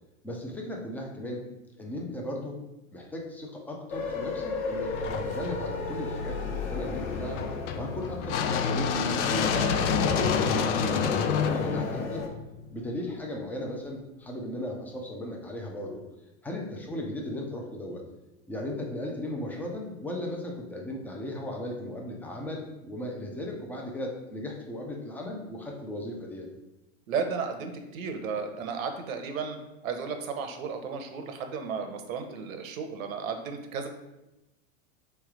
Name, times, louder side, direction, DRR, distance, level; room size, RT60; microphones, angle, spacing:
voice 1, 0.2-1.4 1.8-2.6 2.9-7.5 7.7-9.5 10.0-12.2 12.7-16.0 16.4-18.0 18.5-26.5, left 1 dB, 5° left, 0 dB, 0.4 m, -36 dB
sound 1, 3.9-12.3, left 4 dB, 85° left, 0.8 m, -35 dB
sound 2, 4.9-12.9, left 6 dB, 60° left, 0.6 m, -29 dB
voice 2, 27.1-29.6 29.8-33.9, right 5 dB, 75° right, 6 dB, 0.9 m, -34 dB
3.4 x 3.2 x 4.8 m, 0.96 s
hypercardioid pair, 125°, 40 cm